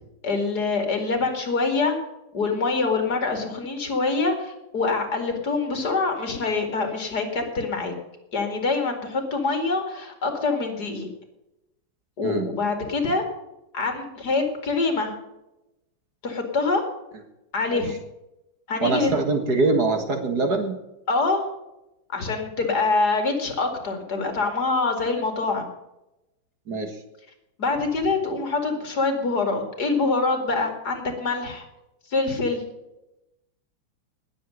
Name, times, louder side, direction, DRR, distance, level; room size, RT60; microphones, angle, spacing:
voice 1, 0.2-2.0 2.3-7.9 8.3-11.1 12.2-13.2 13.7-15.2 16.2-16.9 17.5-17.9 18.7-19.1 21.1-21.4 22.1-25.7 27.6-31.7 32.1-32.6, left 3 dB, 50° left, 5 dB, 2.8 m, -25 dB
voice 2, 18.8-20.8 26.7-27.0, right 3 dB, 50° right, 5 dB, 2.1 m, -23 dB
19.0 x 7.6 x 6.4 m, 0.93 s
omnidirectional pair, 2.2 m